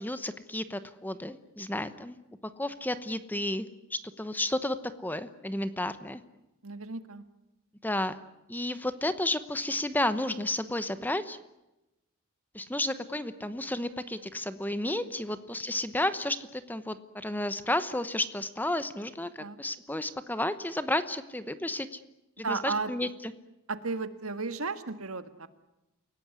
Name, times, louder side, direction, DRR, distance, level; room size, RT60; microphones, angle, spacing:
voice 1, 0.0-2.2 2.6-6.2 7.8-8.1 8.5-11.4 12.5-22.0 22.4-23.1, left 1 dB, 10° left, 12 dB, 1.0 m, -32 dB
voice 2, 6.6-7.2 19.4-19.6 22.4-23.1 23.7-25.5, right 4 dB, 70° right, 10 dB, 1.9 m, -34 dB
29.0 x 18.0 x 9.7 m, 0.96 s
head